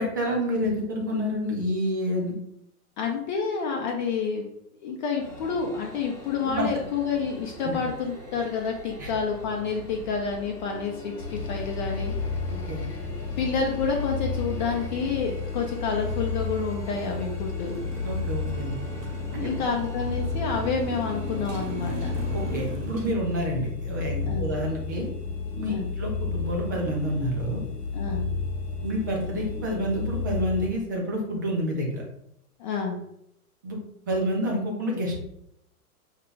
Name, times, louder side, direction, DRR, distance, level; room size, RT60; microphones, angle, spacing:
voice 1, 0.0-2.3 6.4-6.7 7.6-7.8 9.0-9.1 12.7-12.8 18.0-18.7 19.3-19.5 22.3-25.1 25.6-27.6 28.8-32.0 33.6-33.8 34.1-35.2, equal, 15° right, -1 dB, 0.3 m, -28 dB
voice 2, 3.0-4.4 4.8-12.2 13.4-17.8 19.3-22.1 24.3-24.5 25.7-25.9 27.9-28.3 32.6-33.0, left 5 dB, 30° left, 1 dB, 0.7 m, -29 dB
sound 1, 5.2-22.6, equal, 5° left, 1.0 m, -44 dB
sound 2, 11.2-30.7, left 4 dB, 85° left, 1.0 m, -32 dB
Motorcycle, 17.6-23.1, right 3 dB, 55° right, 1.1 m, -38 dB
5.5 x 2.2 x 3.8 m, 0.75 s
figure-of-eight pair, 110°, 46 cm